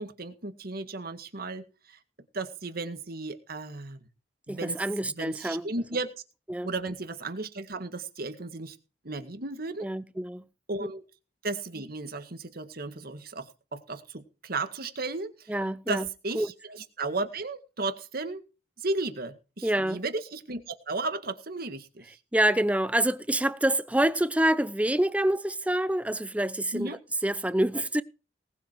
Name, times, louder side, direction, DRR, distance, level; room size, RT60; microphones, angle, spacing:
voice 1, 0.0-2.0 2.3-4.0 4.5-4.8 5.2-6.1 6.6-8.8 9.0-9.9 10.7-11.0 11.4-15.5 15.9-18.4 18.8-22.2 26.7-27.0, right 3 dB, 55° right, 1.9 m, -34 dB
voice 2, 4.5-5.7 6.5-6.7 9.8-10.5 15.5-16.1 16.3-16.5 19.6-20.0 22.3-28.0, right 1 dB, 10° right, 0.7 m, -27 dB
19.0 x 7.7 x 4.7 m
head